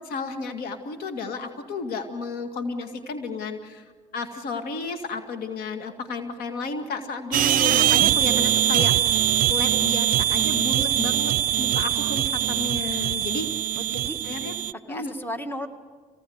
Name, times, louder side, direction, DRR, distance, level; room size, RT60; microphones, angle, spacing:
voice 1, 0.0-3.8 4.1-9.2 9.5-13.5 14.2-14.5 14.9-15.1, left 4 dB, 70° left, 8 dB, 2.3 m, -32 dB
sound 1, 7.3-14.7, right 12 dB, 60° right, 0.6 m, -22 dB
voice 2, 8.7-9.4 13.8-14.2 14.9-15.7, left 1 dB, 15° left, 8 dB, 1.9 m, -36 dB
26.0 x 18.5 x 8.1 m, 1.5 s
supercardioid pair, 70°, 16 cm